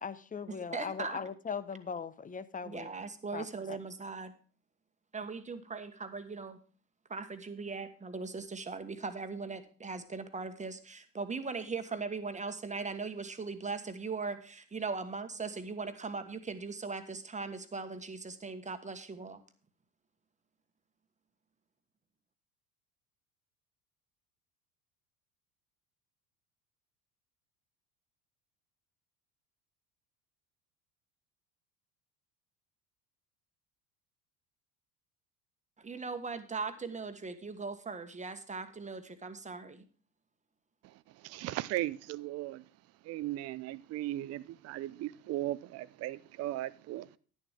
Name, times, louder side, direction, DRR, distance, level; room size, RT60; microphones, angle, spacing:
voice 1, 0.0-2.9 3.3-3.5, left 6 dB, 15° left, 14 dB, 0.9 m, -39 dB
voice 2, 0.7-1.2 2.6-4.3 5.1-6.6 7.1-19.4 35.8-39.8, right 4 dB, 15° right, 9 dB, 1.5 m, -39 dB
voice 3, 40.8-42.6 43.0-47.2, right 15 dB, 35° right, 17 dB, 0.6 m, -37 dB
11.0 x 10.5 x 3.6 m, 0.40 s
figure-of-eight pair, 70°, 47 cm